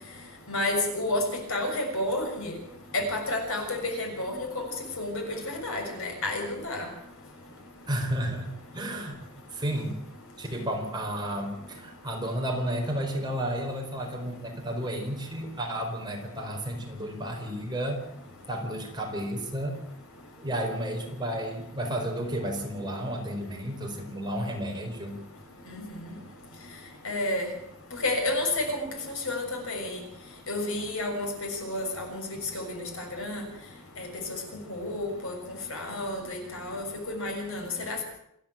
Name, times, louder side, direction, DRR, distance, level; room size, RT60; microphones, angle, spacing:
voice 1, 0.5-1.2 1.5-2.5 2.9-4.5 5.0-6.9 25.7-26.1 27.0-27.5 28.0-28.8 29.2-30.0 30.5-32.2 32.5-33.4 34.0-34.1 34.7-35.3 35.7-38.0, left 2 dB, 70° left, 2 dB, 6.5 m, -30 dB
voice 2, 7.9-8.5 8.7-9.1 9.5-10.0 10.4-18.0 18.5-19.8 20.4-25.2, right 1 dB, 20° right, 1 dB, 4.5 m, -32 dB
27.5 x 10.5 x 9.0 m, 0.78 s
head